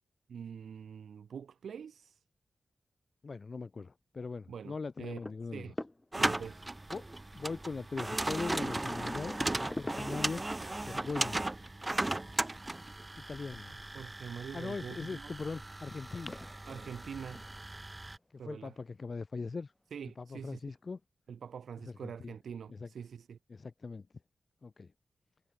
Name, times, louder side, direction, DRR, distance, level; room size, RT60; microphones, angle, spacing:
voice 1, 0.3-2.2 4.5-5.2 5.5-5.7 6.2-6.6 9.4-9.6 13.7-15.3 16.7-17.4 18.4-18.8 19.9-20.6 21.3-23.4, right 7 dB, 85° right, 6.5 m, -45 dB
voice 2, 3.2-5.7 6.9-7.0 7.3-9.4 9.8-10.4 10.8-11.5 13.3-13.7 14.5-16.3 18.5-19.7 20.2-21.0 21.8-22.3 22.7-22.9 23.5-24.1 24.6-24.9, left 4 dB, 50° left, 2.7 m, -40 dB
sound 1, 5.0-6.4 7.9-8.0 8.6-10.5 14.3-15.0 15.6-15.7 16.1-18.1 19.0-19.3 20.2-20.3 20.7-20.8, left 1 dB, 20° left, 5.4 m, -45 dB
sound 2, 6.1-18.2, right 2 dB, 25° right, 1.3 m, -37 dB
cardioid pair, 55°, 0 cm